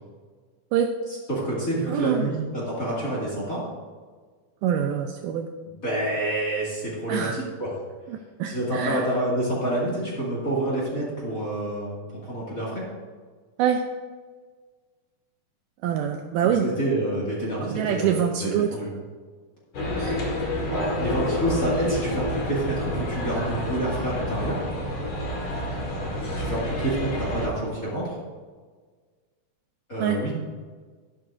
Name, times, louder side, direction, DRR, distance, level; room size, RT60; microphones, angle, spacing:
voice 1, 1.3-3.6 5.8-7.7 8.5-12.8 16.6-18.9 20.7-24.6 26.4-28.1 29.9-30.3, right 1 dB, 30° left, -6 dB, 2.1 m, -28 dB
voice 2, 1.9-2.3 4.6-5.5 7.1-7.4 8.1-9.1 13.6-13.8 15.8-16.7 17.6-18.8 20.0-20.2 21.8-21.9 30.0-30.2, right 9 dB, 80° right, 5 dB, 2.0 m, -25 dB
sound 1, 19.7-27.5, left 1 dB, 45° left, 2.1 m, -29 dB
11.5 x 10.5 x 2.6 m, 1.5 s
omnidirectional pair, 4.1 m